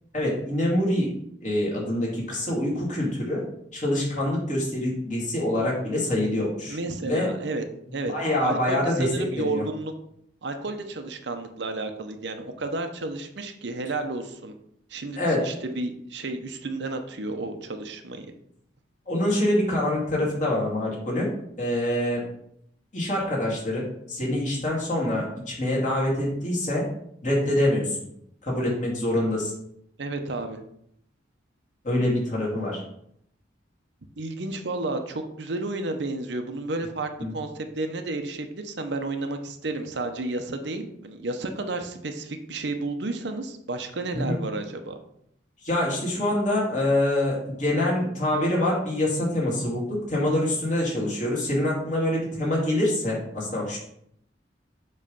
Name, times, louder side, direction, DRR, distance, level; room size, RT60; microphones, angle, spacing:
voice 1, 0.1-1.1 1.4-3.4 3.7-7.3 8.1-9.1 9.4-9.6 15.2-15.5 19.1-21.3 21.6-22.2 22.9-26.8 27.2-28.0 28.4-29.5 31.8-32.8 37.2-37.3 44.1-44.4 45.6-53.8, left 1 dB, 40° left, -4 dB, 2.4 m, -25 dB
voice 2, 6.7-7.6 7.9-8.1 8.4-9.9 10.4-14.5 14.9-18.3 30.0-30.6 34.2-44.9, right 2 dB, 70° right, 6 dB, 0.7 m, -32 dB
7.5 x 3.2 x 5.4 m, 0.72 s
head